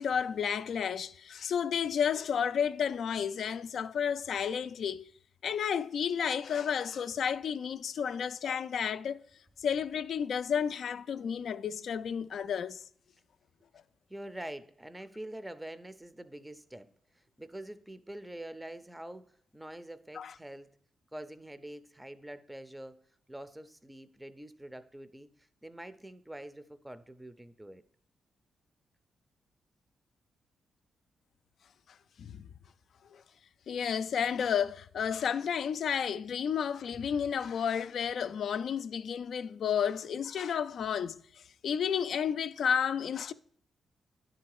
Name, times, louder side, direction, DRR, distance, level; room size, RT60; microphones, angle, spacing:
voice 1, 0.0-5.1 5.4-9.2 9.6-12.8 20.2-20.3 32.2-32.5 33.1-33.2 33.7-41.2 41.6-43.3, left 7 dB, 70° left, 0.3 m, -31 dB
voice 2, 14.1-20.7 21.1-23.0 23.3-27.8, right 1 dB, 10° right, 0.5 m, -45 dB
10.0 x 3.8 x 4.7 m
cardioid pair, 70°, 0 cm